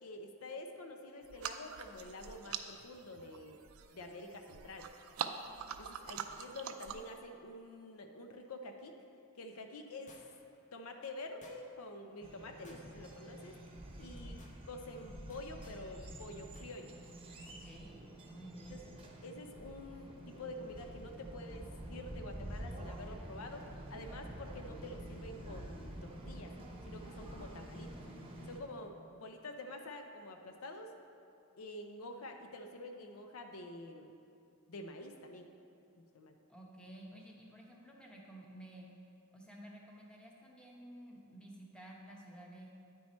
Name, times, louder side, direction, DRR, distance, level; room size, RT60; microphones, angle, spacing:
voice 1, 0.0-3.6 3.9-4.9 5.8-9.0 9.4-10.2 10.7-13.5 14.0-17.0 18.7-18.9 19.2-26.5 26.8-27.9 28.5-30.9 31.6-34.1 34.7-35.5 36.1-36.4, left 2 dB, 75° left, 5 dB, 0.6 m, -48 dB
sound 1, 1.2-7.2, right 7 dB, 70° right, 0.4 m, -44 dB
sound 2, 10.1-10.6 11.4-11.9 12.6-13.2 13.5-13.7 14.1-14.6 15.3-15.8 16.5-16.7 17.0-17.1, left 1 dB, 35° left, 0.8 m, -60 dB
sound 3, 12.2-28.6, right 1 dB, 25° right, 0.8 m, -48 dB
voice 2, 17.4-18.0 18.3-18.8 36.5-38.9 39.3-42.7, right 1 dB, 5° left, -2 dB, 0.8 m, -53 dB
9.5 x 4.6 x 4.2 m, 2.5 s
head